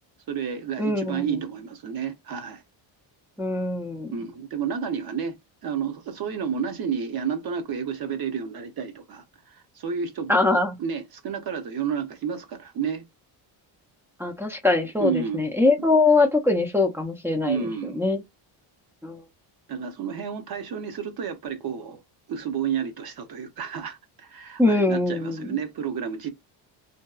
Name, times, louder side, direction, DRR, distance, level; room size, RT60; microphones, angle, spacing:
voice 1, 0.3-2.6 4.1-5.4 5.6-10.4 10.8-13.0 15.0-15.4 17.5-18.0 19.7-22.0 22.3-26.3, right 7 dB, 45° right, 0.7 m, -31 dB
voice 2, 0.8-1.4 3.4-4.1 10.3-10.8 14.2-18.2 19.0-19.2 24.6-25.6, left 3 dB, 5° right, 0.3 m, -22 dB
2.7 x 2.2 x 2.3 m
cardioid pair, 110°, 50 cm